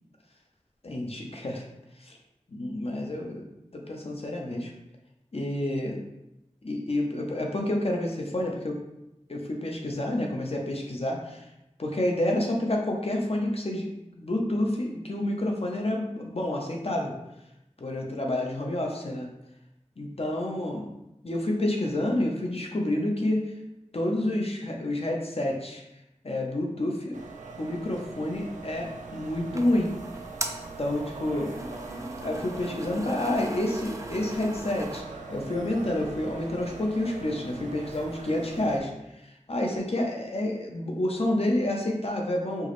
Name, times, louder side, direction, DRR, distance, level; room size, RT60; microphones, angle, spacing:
voice 1, 0.8-1.6 2.0-2.2 2.5-3.4 3.7-4.7 5.3-6.0 6.6-8.8 9.3-11.5 11.8-13.9 14.2-17.1 17.8-19.3 20.0-20.9 21.2-23.5 23.9-25.8 26.2-27.2 27.6-29.9 30.8-31.5 32.2-35.0 35.3-42.7, left 1 dB, 55° left, 0 dB, 0.7 m, -29 dB
sound 1, 27.1-38.8, right 4 dB, 85° right, 0.4 m, -42 dB
sound 2, 29.2-35.0, right 2 dB, 25° right, 0.4 m, -39 dB
4.5 x 2.0 x 3.0 m, 0.90 s
wide cardioid pair, 45°, 12 cm